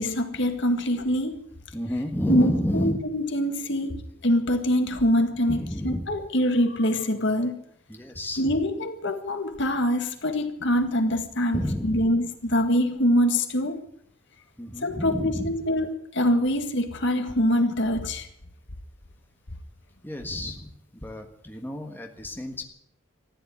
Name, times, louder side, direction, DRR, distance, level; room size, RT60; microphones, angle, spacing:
voice 1, 0.0-1.4 2.3-7.6 8.4-13.8 14.8-18.3, equal, 55° left, 1.8 m, -24 dB
voice 2, 1.7-3.0 5.5-6.1 7.9-8.6 11.5-12.1 14.6-15.5 20.0-22.6, equal, 10° left, 1.5 m, -30 dB
14.5 x 10.0 x 9.7 m
head